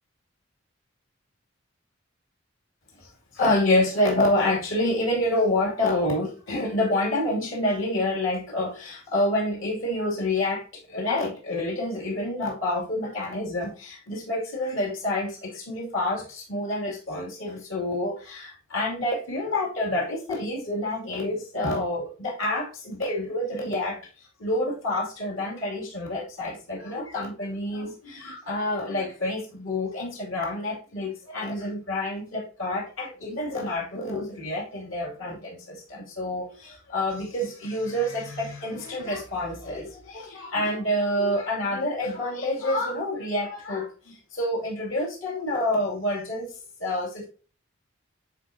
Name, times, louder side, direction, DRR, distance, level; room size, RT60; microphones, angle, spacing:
voice 1, 3.0-24.0 24.4-46.5 46.8-47.3, left 1 dB, 70° left, -2 dB, 2.5 m, -28 dB
10.0 x 4.0 x 2.7 m, 0.36 s
head